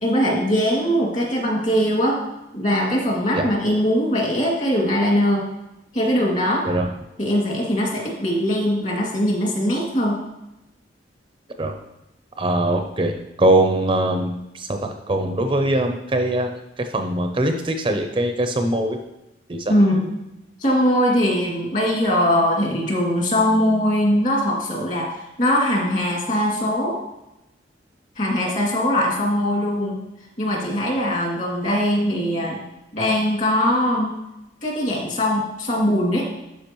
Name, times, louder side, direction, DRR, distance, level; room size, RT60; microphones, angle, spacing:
voice 1, 0.0-2.2 2.5-5.5 5.9-6.7 7.2-10.2 19.7-20.1 20.6-27.0 28.2-30.0 30.4-32.6 32.9-34.1 34.6-36.2, equal, 45° left, -3 dB, 2.3 m, -21 dB
voice 2, 12.4-13.1 13.4-19.0 19.5-19.8, right 1 dB, 30° right, 5 dB, 0.5 m, -22 dB
12.0 x 4.9 x 3.0 m, 0.91 s
head